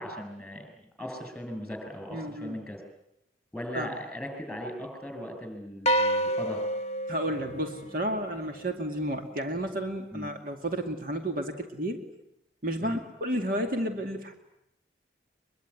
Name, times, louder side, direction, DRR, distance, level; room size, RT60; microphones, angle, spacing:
voice 1, 0.0-2.8 3.5-6.7 10.1-10.3 12.8-13.0, equal, 5° left, 4 dB, 6.6 m, -38 dB
voice 2, 2.1-2.5 3.7-3.9 7.1-12.0 12.6-14.3, right 1 dB, 55° right, 4 dB, 2.3 m, -32 dB
sound 1, 5.9-8.4, right 1 dB, 35° left, 1.0 m, -29 dB
24.0 x 23.0 x 9.7 m, 0.82 s
head